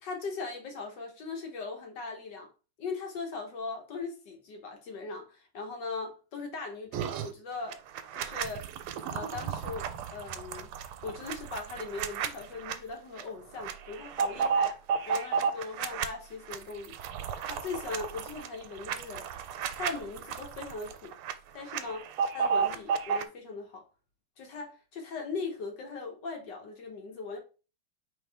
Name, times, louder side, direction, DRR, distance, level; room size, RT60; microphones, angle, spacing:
voice 1, 0.0-2.5 2.8-7.8 8.1-8.7 9.1-10.7 11.0-14.8 15.1-17.0 17.4-19.3 19.7-21.1 21.5-22.1 22.3-23.8 24.4-27.4, left 4 dB, 60° left, 1.4 m, -39 dB
sound 1, 6.9-7.3 7.7-12.8 13.2-13.3 13.6-16.1 16.5-21.3 21.6-23.2, right 6 dB, 90° right, 1.5 m, -33 dB
4.7 x 3.3 x 3.3 m
omnidirectional pair, 2.4 m